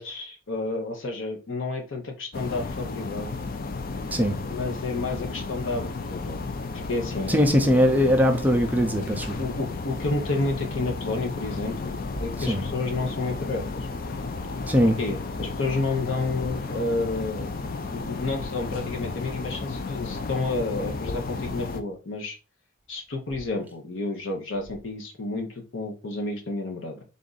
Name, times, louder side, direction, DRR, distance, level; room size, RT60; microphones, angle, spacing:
voice 1, 0.0-3.4 4.4-6.4 6.9-7.8 9.4-13.9 14.8-17.5 17.9-22.4 22.9-27.0, left 3 dB, 70° left, 1.0 m, -30 dB
sound 1, 2.3-21.8, left 3 dB, 50° left, 0.4 m, -33 dB
voice 2, 7.3-9.4 12.4-12.6 14.7-15.0, equal, 10° right, 0.5 m, -21 dB
3.7 x 2.6 x 3.9 m
head